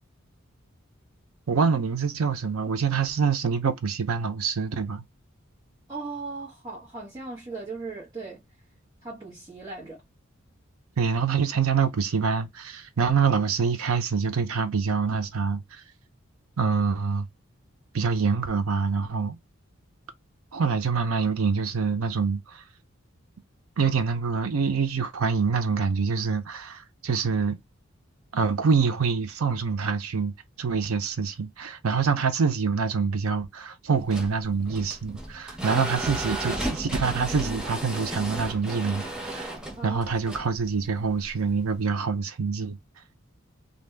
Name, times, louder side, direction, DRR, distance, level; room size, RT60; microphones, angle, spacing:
voice 1, 1.5-5.0 11.0-15.8 16.6-17.3 17.9-19.4 20.5-22.6 23.8-27.6 28.3-39.5 39.8-42.8, right 5 dB, 90° right, 0.6 m, -26 dB
voice 2, 5.9-8.4 9.0-10.0 39.8-40.0, right 3 dB, 20° right, 1.2 m, -37 dB
sound 1, 33.9-41.8, right 1 dB, 5° right, 0.6 m, -34 dB
2.7 x 2.2 x 3.4 m
head